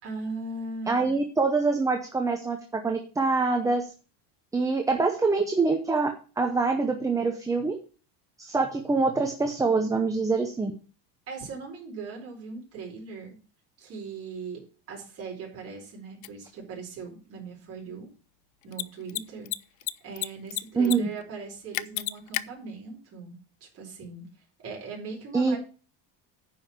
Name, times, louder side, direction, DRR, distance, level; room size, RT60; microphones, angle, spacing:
voice 1, 0.0-1.2 11.3-13.3 13.8-14.6 14.9-18.1 18.6-19.5 20.0-23.4 23.7-24.3 24.6-25.6, right 4 dB, 30° right, -2 dB, 4.4 m, -39 dB
voice 2, 0.9-3.9 4.5-6.1 6.4-7.8 8.4-10.7 20.8-21.1 25.3-25.6, right 4 dB, 10° right, 4 dB, 0.6 m, -25 dB
Mechanisms, 16.2-16.3 18.6-18.8 19.1-19.2 19.5-20.3 20.5-21.0 21.2-21.3 21.7-22.4, left 18 dB, 70° left, 0.7 m, -29 dB
9.5 x 5.6 x 7.1 m, 0.37 s
cardioid pair, 170°, 43 cm